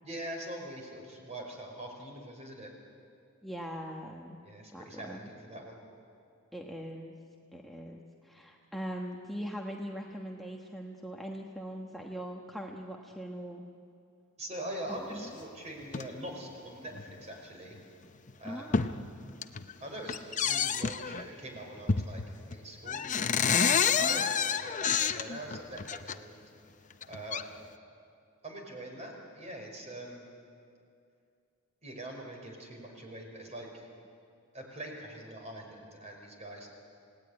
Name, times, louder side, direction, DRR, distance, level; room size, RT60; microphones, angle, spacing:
voice 1, 0.0-2.7 4.4-5.8 14.4-17.7 18.4-18.8 19.8-22.2 22.5-26.4 26.8-27.4 28.4-30.3 31.8-33.9 34.5-36.7, right 1 dB, 30° right, 2 dB, 5.0 m, -43 dB
voice 2, 3.4-4.4 4.7-5.2 6.5-7.1 7.5-13.6 15.1-15.3 18.4-19.2 24.0-24.2, equal, ahead, -1 dB, 1.2 m, -41 dB
sound 1, 15.8-16.1 17.0-17.1 17.7-17.8 18.3-18.9 19.3-19.7 20.1-21.2 21.9-22.3 22.5-22.6 22.9-26.2 26.9-27.4, left 6 dB, 35° left, 0.7 m, -29 dB
28.0 x 17.5 x 9.7 m, 2.4 s
head